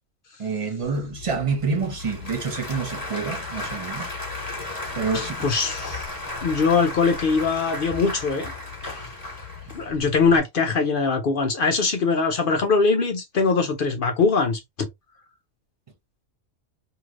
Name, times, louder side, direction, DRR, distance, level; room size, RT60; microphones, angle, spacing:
voice 1, 0.4-4.2 4.9-5.5, right 4 dB, 40° right, 0.5 m, -27 dB
Applause / Crowd, 0.8-10.4, left 3 dB, 30° left, 1.4 m, -35 dB
voice 2, 5.1-8.5 8.8-9.1 9.7-14.9, left 4 dB, 60° left, 0.5 m, -22 dB
3.1 x 2.8 x 2.4 m
omnidirectional pair, 1.5 m